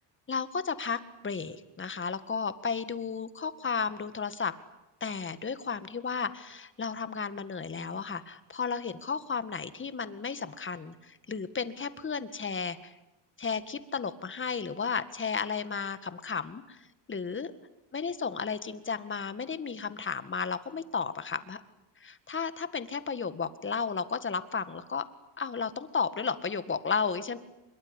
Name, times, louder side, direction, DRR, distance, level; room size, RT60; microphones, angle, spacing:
voice 1, 0.3-4.5 5.0-12.9 13.4-16.8 17.1-17.5 17.9-21.6 22.0-25.1 25.4-27.4, left 5 dB, 25° left, 13 dB, 1.9 m, -33 dB
24.5 x 22.5 x 9.8 m, 1.0 s
cardioid pair, 105°, 47 cm